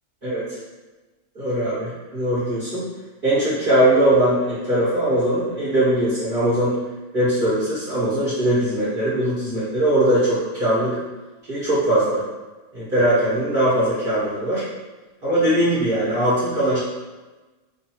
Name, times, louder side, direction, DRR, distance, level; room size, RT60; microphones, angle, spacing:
voice 1, 1.3-2.9 3.2-6.8 7.1-11.0 11.5-12.2 12.7-14.6 15.2-16.8, right 1 dB, 40° right, -11 dB, 1.2 m, -20 dB
3.0 x 2.7 x 4.4 m, 1.2 s
omnidirectional pair, 1.5 m